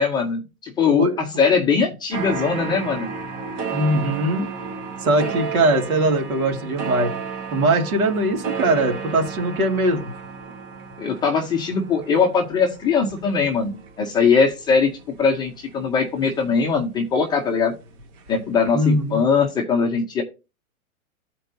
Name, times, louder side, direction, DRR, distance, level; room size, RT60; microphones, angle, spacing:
voice 1, 0.0-3.1 5.2-5.3 11.0-14.9 15.2-17.7 18.3-20.2, left 5 dB, 10° left, 2 dB, 0.5 m, -21 dB
sound 1, 2.1-17.2 17.6-19.0 19.3-19.4, right 5 dB, 30° right, 1.0 m, -33 dB
voice 2, 3.7-4.5 5.0-7.1 7.5-10.1 18.7-19.2, right 1 dB, 80° right, 2 dB, 2.5 m, -21 dB
13.5 x 4.5 x 2.6 m, 0.28 s
hypercardioid pair, 140°, 42 cm